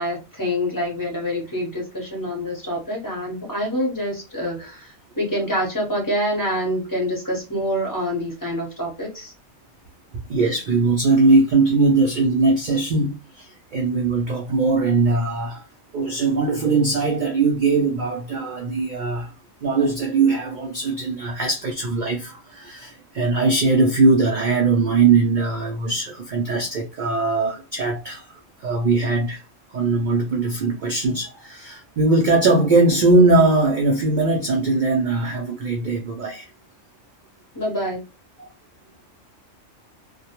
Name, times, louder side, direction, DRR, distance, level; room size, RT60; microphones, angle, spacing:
voice 1, 0.0-9.3 37.5-38.0, equal, 20° left, 0.7 m, -26 dB
voice 2, 10.1-15.6 15.9-19.3 19.6-28.3 28.6-29.4 29.7-36.5 38.4-38.5, right 3 dB, 80° right, 0.4 m, -20 dB
2.2 x 2.1 x 2.8 m
omnidirectional pair, 1.4 m